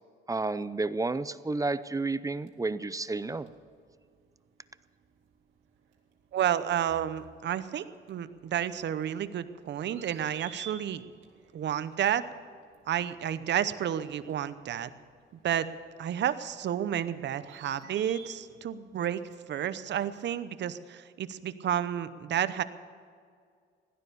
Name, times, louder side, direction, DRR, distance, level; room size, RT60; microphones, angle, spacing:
voice 1, 0.3-3.5, right 3 dB, 15° right, 15 dB, 0.6 m, -31 dB
sound 1, 1.7-20.4, right 5 dB, 85° right, 2.2 m, -55 dB
voice 2, 6.3-11.0 11.5-12.2 12.9-14.9 15.4-15.7 16.0-19.2 19.5-22.6, right 10 dB, 60° right, 13 dB, 0.8 m, -31 dB
16.0 x 12.5 x 6.9 m, 2.2 s
cardioid pair, 90°, 20 cm